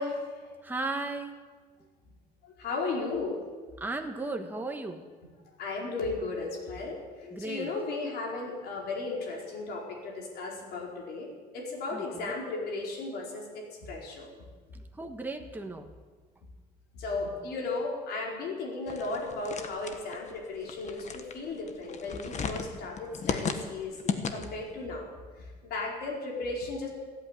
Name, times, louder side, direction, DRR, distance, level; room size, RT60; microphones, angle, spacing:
voice 1, 0.0-0.5 2.6-3.4 5.6-14.3 16.9-25.1 25.6-26.9, left 3 dB, 70° left, -1 dB, 4.7 m, -35 dB
voice 2, 0.6-1.4 3.8-5.1 7.3-7.7 11.9-12.3 14.7-15.9, right 2 dB, 10° right, 4 dB, 1.4 m, -36 dB
sound 1, 18.9-24.7, left 6 dB, 45° left, 1.4 m, -36 dB
16.0 x 8.9 x 9.2 m, 1.4 s
cardioid pair, 110°, 17 cm